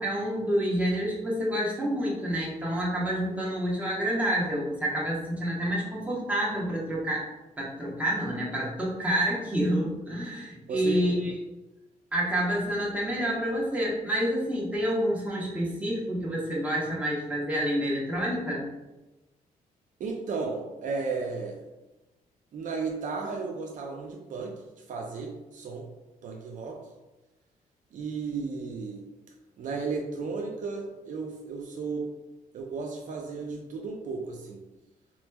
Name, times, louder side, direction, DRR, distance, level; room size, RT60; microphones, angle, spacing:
voice 1, 0.0-7.3 7.6-11.3 12.1-18.7, equal, 10° right, -5 dB, 1.0 m, -28 dB
voice 2, 10.7-11.3 20.0-21.6 22.5-24.6 24.9-25.9 26.2-26.8 27.9-29.0 29.6-32.1 32.5-34.6, right 4 dB, 60° right, 1 dB, 0.5 m, -34 dB
4.3 x 3.0 x 2.2 m, 1.1 s
cardioid pair, 125°, 15 cm